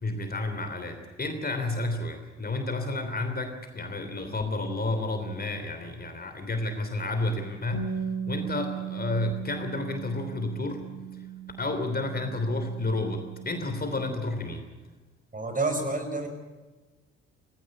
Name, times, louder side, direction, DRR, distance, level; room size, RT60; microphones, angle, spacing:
voice 1, 0.0-7.9 8.3-10.8 11.6-14.6, left 2 dB, 25° left, 6 dB, 3.3 m, -31 dB
Bass guitar, 7.7-14.0, right 7 dB, 45° left, 3.3 m, -37 dB
voice 2, 15.3-16.3, right 2 dB, 25° right, 6 dB, 5.1 m, -28 dB
18.0 x 17.0 x 9.7 m, 1.3 s
hypercardioid pair, 50°, 34 cm